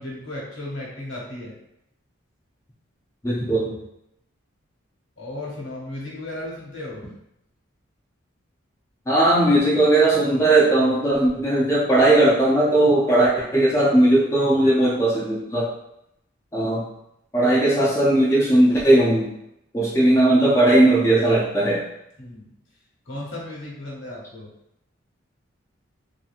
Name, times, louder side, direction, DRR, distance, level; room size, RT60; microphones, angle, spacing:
voice 1, 0.0-1.5 5.2-7.0 22.2-22.5 23.0-24.5, left 1 dB, 70° left, -4 dB, 1.1 m, -35 dB
voice 2, 3.2-3.7 9.1-15.7 16.5-16.9 17.3-19.3 19.7-21.8, right 1 dB, 15° left, -7 dB, 0.4 m, -18 dB
2.7 x 2.7 x 2.4 m, 0.82 s
head